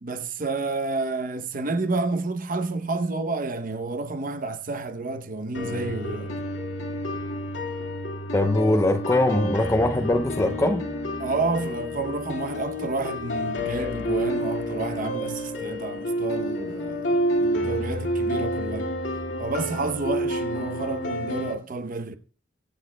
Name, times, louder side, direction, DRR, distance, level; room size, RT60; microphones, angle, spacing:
voice 1, 0.0-6.3 11.2-18.9 19.4-22.2, right 3 dB, 45° right, 0.8 m, -30 dB
sound 1, 5.5-21.5, equal, 75° left, 1.9 m, -29 dB
voice 2, 8.3-10.8, left 1 dB, 15° left, 0.5 m, -22 dB
24.0 x 8.4 x 2.2 m
head